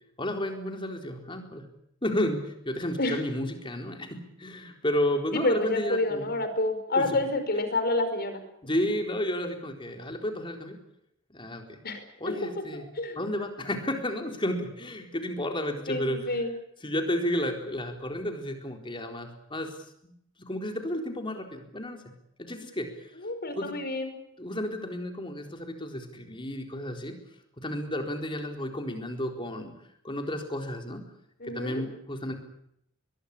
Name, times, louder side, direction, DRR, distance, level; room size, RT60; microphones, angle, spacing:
voice 1, 0.2-1.7 2.0-6.3 7.0-7.1 8.6-10.8 11.3-11.8 12.2-12.8 13.2-16.4 16.8-19.7 20.4-22.0 22.4-23.1 23.5-23.8 24.4-27.2 27.6-29.7 30.0-31.0 31.4-32.3, left 1 dB, 25° left, 4 dB, 4.2 m, -32 dB
voice 2, 5.3-8.4 11.8-12.3 13.0-13.2 15.9-16.5 23.2-24.1 31.4-31.8, left 2 dB, 50° left, 9 dB, 4.9 m, -28 dB
22.5 x 21.5 x 8.6 m, 0.74 s
head